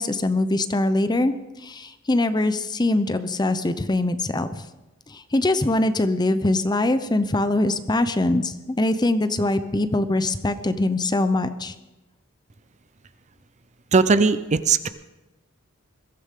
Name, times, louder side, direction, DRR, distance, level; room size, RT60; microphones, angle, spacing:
voice 1, 0.0-1.3 1.6-4.6 5.1-11.8, left 2 dB, 20° left, 11 dB, 0.6 m, -23 dB
voice 2, 13.9-14.9, right 4 dB, 35° right, 13 dB, 0.5 m, -18 dB
22.0 x 14.5 x 3.7 m, 1.1 s
head